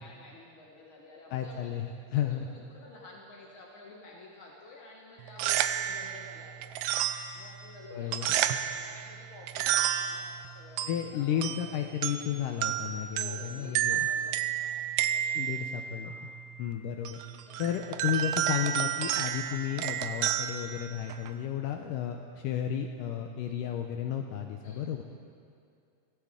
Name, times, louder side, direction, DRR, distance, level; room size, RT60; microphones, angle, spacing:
voice 1, 0.0-1.7 2.1-6.9 7.3-11.7 13.2-15.6 16.0-16.3 17.5-18.0 24.6-24.9, left 2 dB, 60° left, -3 dB, 1.3 m, -51 dB
voice 2, 1.3-2.5 7.9-8.3 10.9-14.1 15.4-16.1 16.6-17.2 17.6-25.0, left 9 dB, 85° left, 4 dB, 1.9 m, -33 dB
sound 1, 5.2-21.4, right 11 dB, 85° right, 1.9 m, -32 dB
23.5 x 16.5 x 3.7 m, 2.4 s
omnidirectional pair, 4.5 m